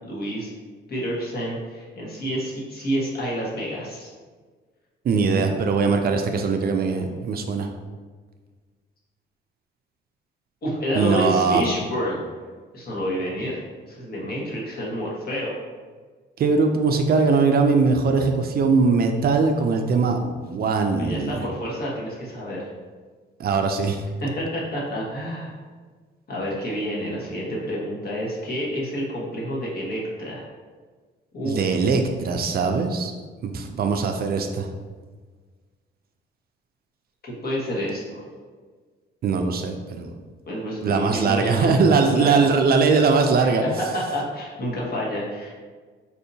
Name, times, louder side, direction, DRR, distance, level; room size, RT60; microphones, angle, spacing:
voice 1, 0.0-0.5 0.9-4.1 5.3-5.6 10.6-12.2 12.7-15.5 21.0-22.7 24.2-25.5 26.3-30.4 31.3-31.6 37.2-38.3 40.4-41.7 42.1-42.4 43.4-45.6, equal, 50° left, -4 dB, 1.2 m, -29 dB
voice 2, 5.0-7.7 10.9-11.6 16.4-21.4 23.4-24.0 31.4-33.1 33.4-34.7 39.2-40.1 40.8-43.6, right 4 dB, 50° right, 5 dB, 0.4 m, -21 dB
4.2 x 2.7 x 2.7 m, 1.5 s
cardioid pair, 90°, 20 cm